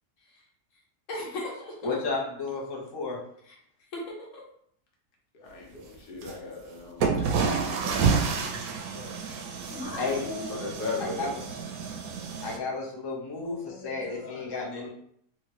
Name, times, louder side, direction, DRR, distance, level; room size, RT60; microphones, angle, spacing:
voice 1, 1.1-1.9 3.9-4.4 9.7-10.6, left 1 dB, 60° left, -2 dB, 1.2 m, -37 dB
voice 2, 1.8-3.2 6.3-6.4 7.2-7.3 7.7-7.9 8.9-9.2 10.0-10.4 11.0-11.3 12.4-14.9, left 3 dB, 40° left, -4 dB, 0.3 m, -33 dB
voice 3, 5.4-7.1 7.5-8.2 10.3-11.3, left 3 dB, 85° left, -1 dB, 1.4 m, -37 dB
sound 1, 6.2-6.3 7.0-12.6, right 5 dB, 75° right, 1.0 m, -29 dB
2.9 x 2.8 x 2.9 m, 0.67 s
omnidirectional pair, 1.6 m